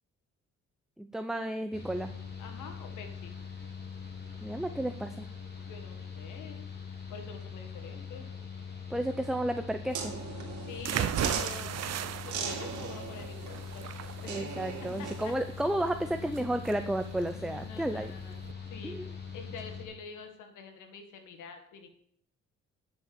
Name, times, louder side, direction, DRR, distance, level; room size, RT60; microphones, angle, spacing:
voice 1, 1.0-2.1 4.4-5.2 8.9-10.1 14.3-18.1 18.8-19.1, right 1 dB, ahead, 8 dB, 0.6 m, -32 dB
Mechanical fan, 1.7-19.8, left 6 dB, 35° left, 3.1 m, -43 dB
voice 2, 2.4-3.3 5.6-8.3 10.7-11.8 12.3-13.9 14.2-14.4 15.0-15.3 17.3-18.4 18.7-21.9, left 5 dB, 85° left, 6 dB, 1.9 m, -46 dB
sound 1, 9.9-15.3, right 6 dB, 75° right, 2.7 m, -39 dB
sound 2, 10.8-18.5, right 10 dB, 60° right, 0.7 m, -37 dB
9.7 x 5.9 x 6.8 m, 0.65 s
cardioid pair, 90°, 30 cm